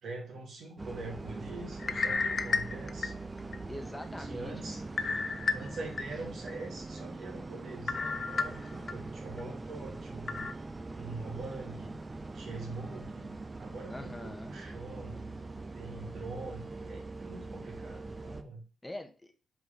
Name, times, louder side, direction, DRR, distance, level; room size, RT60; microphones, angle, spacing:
voice 1, 0.0-3.1 4.2-4.8 5.5-10.7 10.9-15.4 15.7-18.6, right 3 dB, 75° right, 0 dB, 2.6 m, -43 dB
sound 1, 0.8-18.4, right 3 dB, 30° right, 0.7 m, -42 dB
sound 2, 1.8-3.6 4.0-4.1 5.0-6.0 6.5-6.6 7.9-8.9 9.4-9.5 10.3-10.5, left 4 dB, 50° left, 0.6 m, -32 dB
voice 2, 3.7-4.9 13.9-14.6 18.8-19.3, left 1 dB, 15° left, 6 dB, 1.1 m, -43 dB
5.1 x 4.7 x 5.2 m, 0.35 s
cardioid pair, 70°, 0 cm